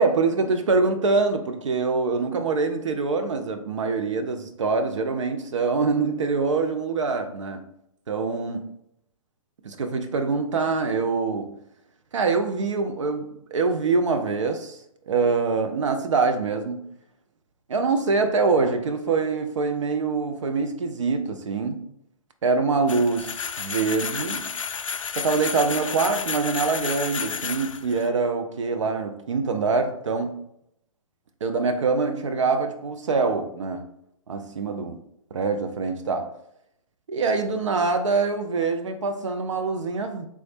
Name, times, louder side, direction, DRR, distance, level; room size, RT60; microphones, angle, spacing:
voice 1, 0.0-7.6 8.1-8.7 9.6-11.6 12.1-14.8 15.1-16.9 17.7-21.8 22.4-24.5 25.1-30.4 31.4-33.9 34.3-35.0 35.3-36.3 37.1-40.3, right 4 dB, 55° right, 0.5 m, -24 dB
sound 1, 22.9-28.1, left 6 dB, 60° left, 0.4 m, -31 dB
3.5 x 3.1 x 4.2 m
figure-of-eight pair, 120°, 18 cm